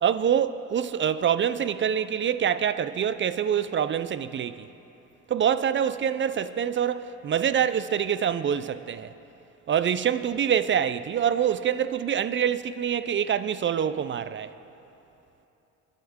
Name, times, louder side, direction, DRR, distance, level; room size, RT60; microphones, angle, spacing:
voice 1, 0.0-4.7 5.3-9.1 9.7-14.5, right 8 dB, 40° right, 0.4 m, -25 dB
21.0 x 9.4 x 3.6 m
cardioid pair, 90°, 30 cm